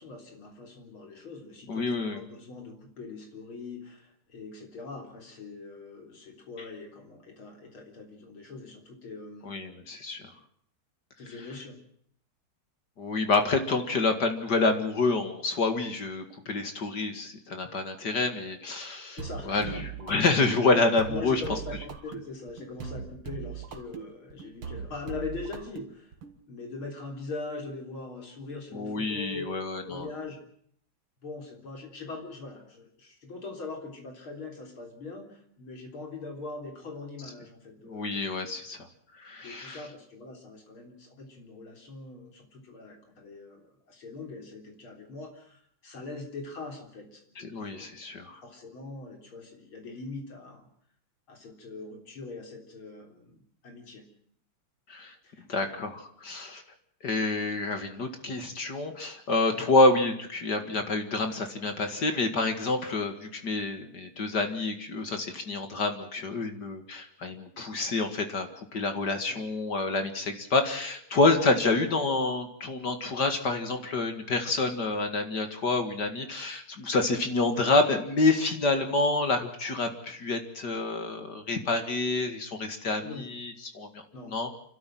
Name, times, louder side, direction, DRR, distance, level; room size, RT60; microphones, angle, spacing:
voice 1, 0.0-9.5 11.2-11.8 19.2-20.2 21.1-26.1 26.5-30.4 31.2-38.3 39.4-47.9 48.4-50.7 51.3-54.0 55.2-55.5 59.5-59.7 69.3-69.5 83.0-83.3 84.1-84.4, left 3 dB, 65° left, 3 dB, 4.4 m, -42 dB
voice 2, 1.7-2.2 9.4-10.2 13.0-19.2 19.5-19.8 20.1-21.4 28.7-30.1 37.9-38.9 39.2-39.8 47.4-48.4 54.9-55.1 55.5-56.6 57.0-84.0 84.3-84.5, left 3 dB, 50° left, 6 dB, 2.4 m, -28 dB
sound 1, 19.2-26.3, right 7 dB, 75° right, 2.6 m, -40 dB
28.5 x 13.0 x 7.7 m, 0.65 s
omnidirectional pair, 2.4 m